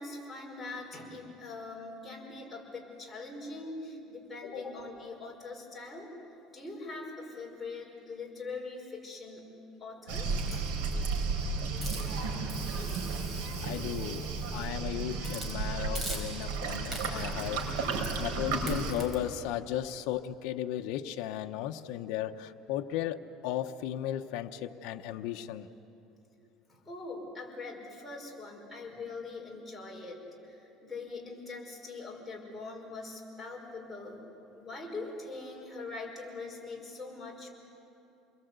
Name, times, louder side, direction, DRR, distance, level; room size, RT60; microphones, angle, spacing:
voice 1, 0.0-6.1 6.5-9.4 9.8-10.7 26.7-34.2 34.5-37.5, left 3 dB, 5° left, -2 dB, 5.3 m, -42 dB
Waves surf, 10.1-18.9, right 4 dB, 85° right, 4.1 m, -33 dB
Hiss, 11.8-14.7 15.2-15.5 15.9-16.6 16.9-17.4 18.0-18.3 18.7-19.1, right 1 dB, 25° right, 5.0 m, -43 dB
voice 2, 13.6-14.3 14.5-25.7, left 12 dB, 75° left, 5 dB, 0.9 m, -36 dB
28.5 x 22.0 x 8.1 m, 2.9 s
cardioid pair, 140°, 0 cm